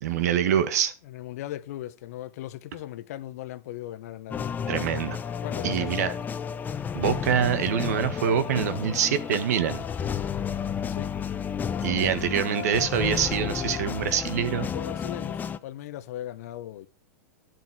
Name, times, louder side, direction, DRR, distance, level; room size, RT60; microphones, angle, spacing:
voice 1, 0.0-0.9 4.7-5.2 5.6-6.1 6.9-9.8 11.8-14.7, right 8 dB, 70° right, 1.7 m, -25 dB
voice 2, 1.0-4.9 5.4-6.2 10.9-11.1 12.0-12.1 14.7-16.9, left 13 dB, 65° left, 1.1 m, -38 dB
sound 1, 4.3-15.6, left 7 dB, 20° left, 0.8 m, -32 dB
10.5 x 7.7 x 6.3 m
hypercardioid pair, 120°, 9 cm